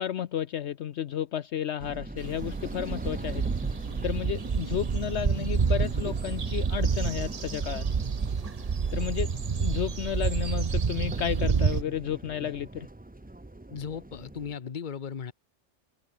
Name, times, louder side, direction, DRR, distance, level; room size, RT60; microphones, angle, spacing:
voice 1, 0.0-3.4 4.0-7.9 8.9-12.9, left 10 dB, 65° left, 1.0 m, -32 dB
sound 1, 1.8-14.6, right 2 dB, 10° right, 0.5 m, -42 dB
sound 2, 2.2-11.8, right 5 dB, 35° right, 0.8 m, -29 dB
voice 2, 13.7-15.3, left 7 dB, 40° left, 1.1 m, -36 dB
omnidirectional pair, 1.3 m